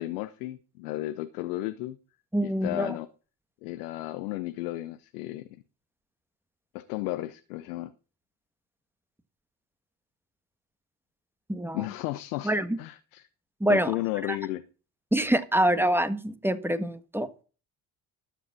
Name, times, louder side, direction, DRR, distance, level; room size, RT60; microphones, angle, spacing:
voice 1, 0.0-2.0 2.4-3.1 3.6-5.4 6.7-7.9 11.7-13.3 13.7-14.6, left 16 dB, 90° left, 0.8 m, -33 dB
voice 2, 2.3-3.0 11.5-11.8 12.4-12.8 13.6-13.9 15.1-17.4, right 1 dB, 5° right, 1.5 m, -25 dB
12.5 x 7.2 x 5.9 m
hypercardioid pair, 65°, 44 cm